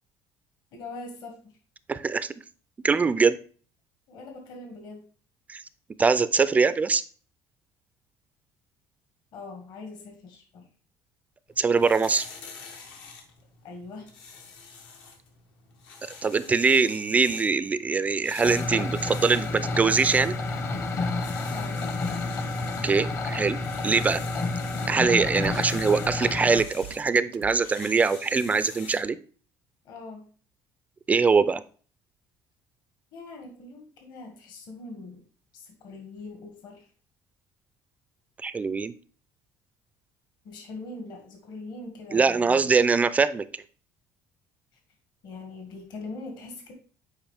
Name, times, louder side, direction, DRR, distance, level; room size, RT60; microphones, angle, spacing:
voice 1, 0.7-1.6 4.1-5.1 9.3-10.7 13.6-14.1 21.5-21.8 29.8-30.3 33.1-35.2 35.5-36.9 40.4-42.7 45.2-46.7, left 3 dB, 60° left, 4 dB, 1.7 m, -42 dB
voice 2, 1.9-2.3 2.8-3.4 5.5-5.6 6.0-7.0 11.6-12.3 16.0-20.4 22.8-24.2 24.9-29.2 31.1-31.6 38.4-38.9 42.1-43.4, right 4 dB, 20° right, 15 dB, 0.3 m, -23 dB
sound 1, 11.5-29.1, left 5 dB, 85° left, 1.7 m, -47 dB
sound 2, 18.4-26.6, left 3 dB, 30° left, 0.8 m, -30 dB
Drum kit, 25.2-27.6, right 14 dB, 80° right, 0.5 m, -43 dB
8.9 x 4.8 x 3.4 m, 0.41 s
cardioid pair, 155°, 8 cm